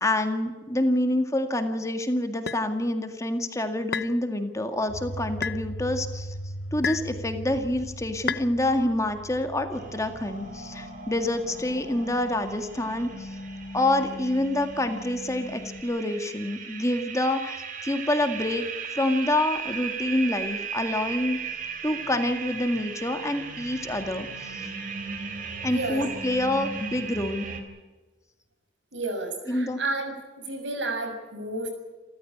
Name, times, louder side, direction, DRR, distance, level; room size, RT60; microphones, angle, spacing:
voice 1, 0.0-6.3 6.7-13.3 13.7-18.7 18.9-21.4 21.8-24.7 25.6-27.5 29.5-29.8, left 1 dB, 15° left, 6 dB, 1.9 m, -27 dB
sound 1, 2.5-2.6 3.9-4.2 5.4-5.6 6.8-7.1 8.3-8.5, left 6 dB, 60° left, 0.9 m, -30 dB
sound 2, 4.9-15.8, equal, 85° left, 1.7 m, -40 dB
sound 3, 9.7-27.6, right 6 dB, 45° right, 3.8 m, -37 dB
voice 2, 25.7-26.0 28.9-30.1 30.4-31.7, right 2 dB, 85° right, 5 dB, 6.7 m, -31 dB
29.0 x 14.0 x 8.7 m, 1.2 s
head